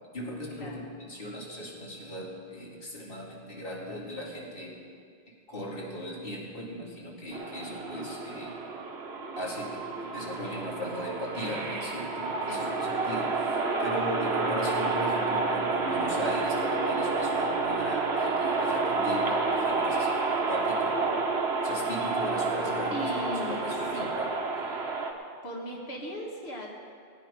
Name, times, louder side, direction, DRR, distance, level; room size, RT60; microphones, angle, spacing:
voice 1, 0.1-4.8 5.5-8.6 9.4-24.9, equal, 60° left, -4 dB, 2.7 m, -38 dB
sound 1, 7.3-25.1, right 3 dB, 85° right, 1.5 m, -29 dB
voice 2, 12.4-13.0 22.9-24.1 25.4-26.7, equal, 80° left, -2 dB, 2.1 m, -38 dB
18.0 x 9.6 x 5.3 m, 2.2 s
omnidirectional pair, 1.1 m